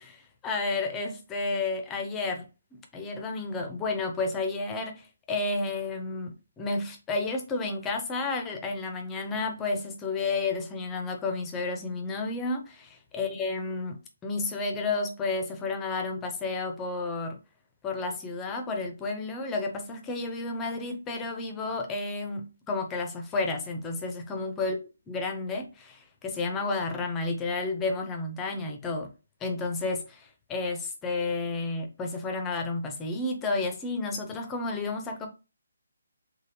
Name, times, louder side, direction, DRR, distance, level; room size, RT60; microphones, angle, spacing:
voice 1, 0.0-2.5 2.9-14.0 14.2-17.4 17.8-24.8 25.1-29.1 29.4-35.3, left 3 dB, 10° left, 0.4 m, -31 dB
3.3 x 2.4 x 2.7 m
hypercardioid pair, 170°, 0 cm